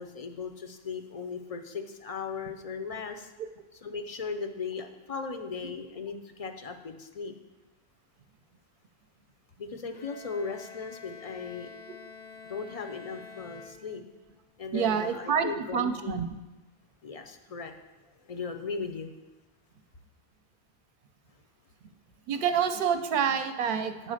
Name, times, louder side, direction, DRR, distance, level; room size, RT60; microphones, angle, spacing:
voice 1, 0.0-3.3 3.7-7.3 9.6-11.7 12.5-14.0 14.6-16.2 17.0-17.7 18.1-19.1, left 5 dB, 45° left, 6 dB, 0.5 m, -37 dB
Bowed string instrument, 9.9-14.4, left 5 dB, 85° left, 0.9 m, -48 dB
voice 2, 14.7-16.3 22.3-24.1, right 7 dB, 60° right, 8 dB, 0.7 m, -28 dB
7.9 x 4.1 x 6.3 m, 1.1 s
omnidirectional pair, 1.1 m